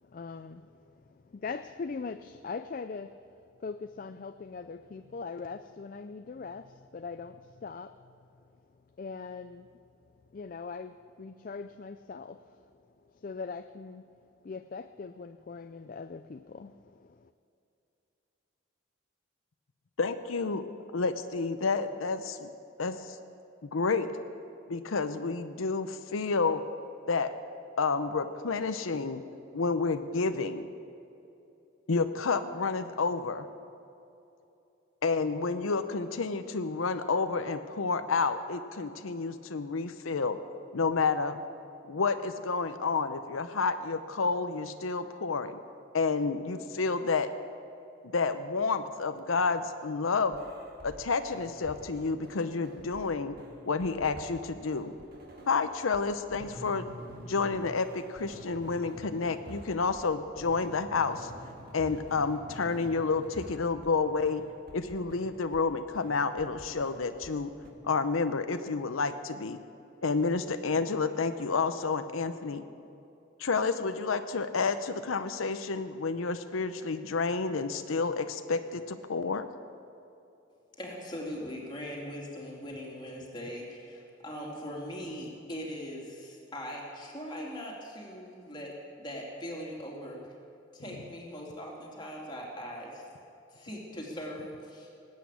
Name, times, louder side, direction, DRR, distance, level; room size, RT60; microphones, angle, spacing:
voice 1, 0.0-3.3 3.6-8.1 9.0-9.7 10.3-12.6 13.1-14.1 14.4-17.3, left 4 dB, 45° left, 10 dB, 0.4 m, -41 dB
voice 2, 20.0-20.6 20.9-22.5 22.8-23.2 23.6-24.1 24.7-26.6 27.1-27.3 27.8-29.2 29.5-30.7 31.9-33.5 35.0-40.4 40.7-41.4 41.9-45.6 45.9-47.3 48.1-50.4 50.8-53.4 53.6-54.9 55.5-56.9 57.2-61.3 61.7-64.4 64.7-67.5 67.8-69.6 70.0-72.6 73.4-79.5, left 4 dB, 90° left, 10 dB, 0.7 m, -30 dB
sound 1, 50.3-51.0 51.3-53.1 53.4-60.1 60.4-64.0 64.2-65.7 65.9-67.4 67.6-67.7, equal, 50° right, 2.0 m, -48 dB
voice 3, 80.8-90.2 90.7-93.0 93.5-94.9, equal, 20° left, -2 dB, 2.8 m, -40 dB
19.0 x 8.4 x 8.4 m, 2.8 s
head